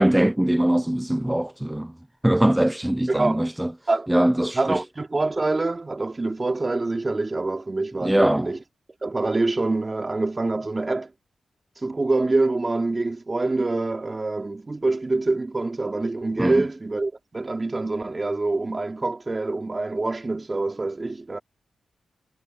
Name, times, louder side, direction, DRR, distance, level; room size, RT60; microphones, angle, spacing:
voice 1, 0.0-1.9 2.2-3.7 4.1-4.8 8.0-8.5 16.4-16.6, right 1 dB, 10° right, 0.4 m, -21 dB
voice 2, 3.1-3.5 3.9-4.1 4.5-8.6 9.0-11.1 11.8-21.4, right 2 dB, 35° right, 3.3 m, -25 dB
cardioid pair, 50°, 0 cm